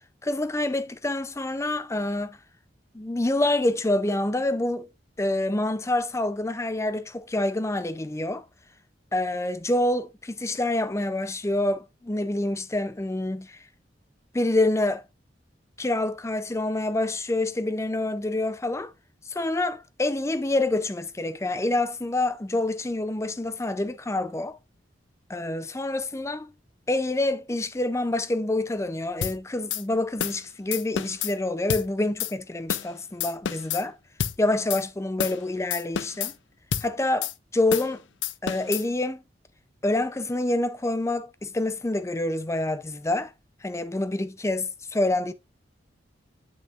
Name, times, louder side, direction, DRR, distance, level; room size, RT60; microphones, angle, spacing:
voice 1, 0.2-2.4 2.9-4.9 5.2-8.5 9.1-13.6 14.3-15.0 15.8-18.9 19.3-24.6 25.3-26.5 26.9-34.0 34.4-36.3 36.8-38.0 38.4-39.2 39.8-43.3 43.6-45.3, left 2 dB, 15° left, 0.5 m, -27 dB
sound 1, 29.2-29.4 29.7-29.8 30.2-30.4 30.7-31.3 31.7-31.9 32.2-32.3 32.7-32.9 33.2-33.8 34.2-34.4 34.7-34.8 35.2-35.4 35.7-36.3 36.7-36.9 37.2-37.3 37.7-37.9 38.2-38.8, left 9 dB, 85° left, 0.5 m, -29 dB
7.4 x 6.3 x 2.5 m
head